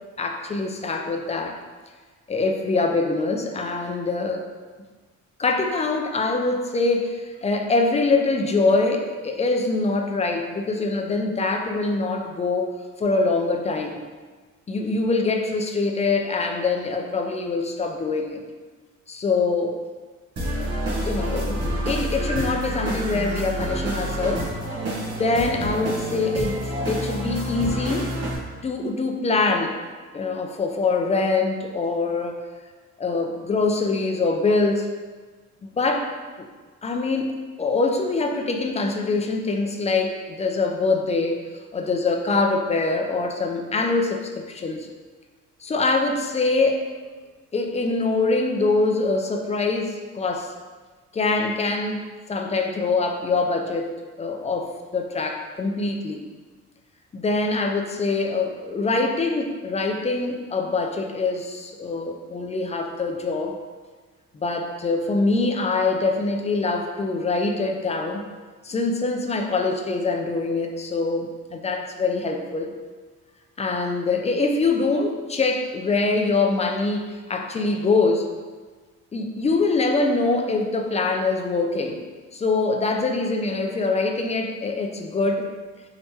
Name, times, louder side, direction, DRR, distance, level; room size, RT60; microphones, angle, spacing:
voice 1, 0.2-1.6 2.3-4.4 5.4-12.7 13.0-14.0 14.7-18.4 19.1-19.8 20.5-20.7 21.0-24.5 25.1-26.6 26.9-28.1 28.6-29.7 30.1-32.4 33.0-34.9 35.6-36.1 36.8-41.4 41.7-44.9 45.6-46.8 47.5-50.5 51.1-56.2 57.1-63.6 64.3-68.2 68.6-72.8 73.6-78.3 79.1-82.0 82.3-85.5, left 3 dB, 25° left, 3 dB, 0.4 m, -24 dB
sound 1, 20.4-28.4, right 1 dB, 55° right, 1.0 m, -28 dB
3.5 x 2.9 x 2.8 m, 1.4 s
cardioid pair, 90°, 30 cm